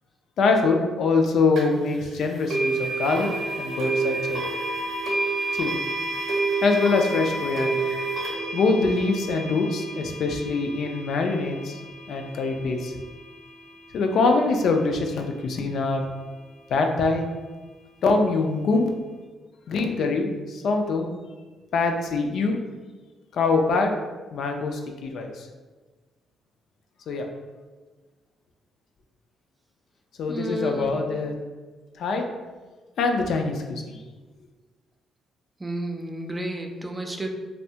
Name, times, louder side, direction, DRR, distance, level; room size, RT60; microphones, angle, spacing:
voice 1, 0.4-3.3 3.6-4.4 5.6-5.8 6.6-7.8 8.5-11.8 12.1-12.9 13.9-16.0 16.7-17.3 18.0-18.9 19.7-21.1 21.7-22.6 23.3-24.0 24.3-25.5 27.1-27.3 30.2-31.4 32.0-32.3 33.0-34.0, left 3 dB, 70° left, 3 dB, 0.3 m, -24 dB
sound 1, 1.5-1.6 2.5-13.5, right 3 dB, 75° right, 0.7 m, -29 dB
voice 2, 30.3-31.0 35.6-37.3, right 1 dB, 15° right, 3 dB, 0.3 m, -31 dB
2.6 x 2.1 x 2.7 m, 1.3 s
cardioid pair, 90°, 0 cm